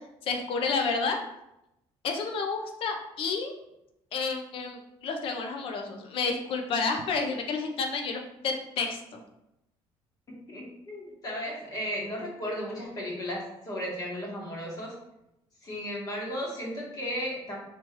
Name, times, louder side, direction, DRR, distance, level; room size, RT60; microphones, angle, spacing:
voice 1, 0.2-1.2 2.0-3.5 4.1-9.2, left 4 dB, 60° left, 4 dB, 0.7 m, -30 dB
voice 2, 10.5-14.9 15.6-17.6, equal, 35° left, -4 dB, 1.6 m, -35 dB
3.4 x 3.1 x 4.5 m, 0.86 s
cardioid pair, 140°, 11 cm